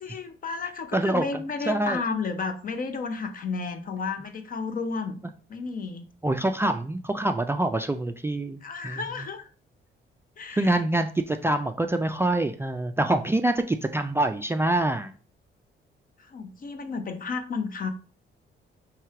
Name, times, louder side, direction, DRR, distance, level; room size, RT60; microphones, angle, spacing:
voice 1, 0.0-5.2 5.5-6.1 8.6-9.5 10.4-10.8 16.2-17.9, left 4 dB, 45° left, 0.7 m, -32 dB
voice 2, 0.9-2.0 6.2-8.6 8.8-9.2 10.5-15.1, right 1 dB, 10° right, 0.3 m, -25 dB
3.3 x 3.1 x 4.7 m
cardioid pair, 90°, 20 cm